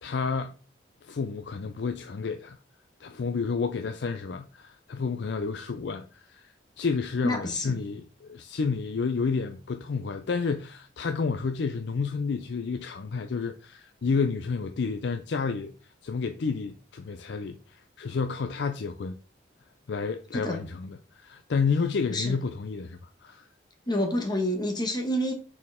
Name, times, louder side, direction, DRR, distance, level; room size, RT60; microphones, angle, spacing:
voice 1, 0.0-0.5 1.0-2.6 3.0-15.7 16.0-19.2 19.9-23.4, left 5 dB, 65° left, 0.4 m, -30 dB
voice 2, 7.2-7.8 20.3-20.6 22.1-22.4 23.9-25.3, equal, 20° left, 1.0 m, -28 dB
6.6 x 4.3 x 3.6 m
head